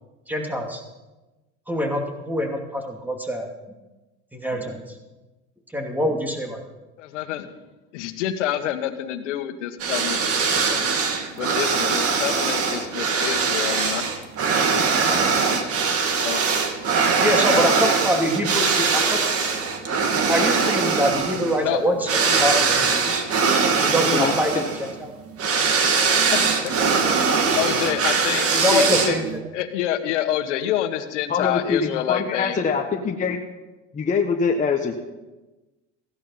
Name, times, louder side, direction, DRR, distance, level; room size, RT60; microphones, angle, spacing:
voice 1, 0.3-0.8 1.7-3.5 4.3-5.0 5.7-6.6 17.2-19.4 20.3-23.2 23.8-25.1 28.5-29.2, equal, 5° right, 2 dB, 2.7 m, -24 dB
voice 2, 7.0-7.5 7.9-10.2 10.4-11.0 11.3-14.0 14.7-15.3 16.2-16.4 17.5-17.9 21.6-21.8 26.3-26.7 27.1-29.1 29.5-32.6, left 12 dB, 90° left, 8 dB, 1.6 m, -28 dB
sound 1, 9.8-29.4, right 5 dB, 40° right, 2.3 m, -22 dB
voice 3, 24.1-24.7 31.3-33.4 33.9-35.0, left 5 dB, 20° left, 1 dB, 1.3 m, -24 dB
16.5 x 11.0 x 5.8 m, 1.1 s
supercardioid pair, 110°, 35 cm